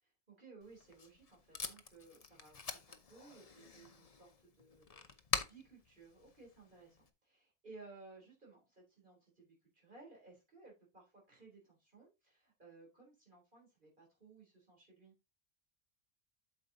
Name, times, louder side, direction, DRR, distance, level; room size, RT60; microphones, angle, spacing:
voice 1, 0.3-15.1, right 3 dB, 45° right, -2 dB, 4.0 m, -59 dB
Packing tape duct tape, 0.6-7.1, left 5 dB, 35° left, 0.8 m, -45 dB
8.7 x 6.6 x 2.8 m, 0.25 s
omnidirectional pair, 1.2 m